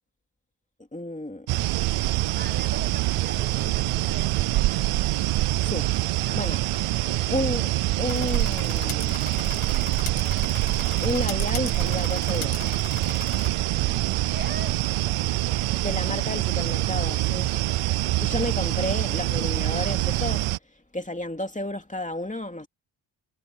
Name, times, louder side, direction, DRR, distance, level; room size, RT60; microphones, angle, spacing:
voice 1, 0.9-1.5 5.6-5.9 6.3-6.6 7.3-7.7 8.0-9.2 11.0-12.6 15.7-17.5 18.2-22.7, left 1 dB, 15° left, 2.7 m, -31 dB
sound 1, 1.5-20.6, right 17 dB, 85° right, 0.6 m, -25 dB
voice 2, 2.4-4.7 6.2-6.4 7.0-7.3 13.8-14.8, right 2 dB, 20° right, 2.3 m, -42 dB
sound 2, 8.1-13.5, left 9 dB, 70° left, 1.7 m, -39 dB
cardioid pair, 55°, 49 cm